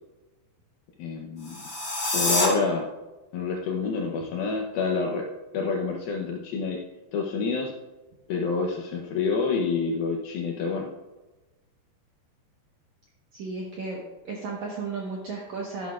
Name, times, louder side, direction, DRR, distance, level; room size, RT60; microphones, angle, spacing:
voice 1, 1.0-1.6 2.1-2.8 3.3-5.2 5.5-6.8 7.1-7.7 8.3-10.9, left 4 dB, 75° left, 0 dB, 2.2 m, -27 dB
sound 1, 1.4-2.5, left 2 dB, 50° left, 1.0 m, -26 dB
voice 2, 13.3-14.0 14.2-15.9, right 4 dB, 70° right, -2 dB, 1.7 m, -34 dB
12.0 x 12.0 x 2.4 m, 1.1 s
omnidirectional pair, 5.2 m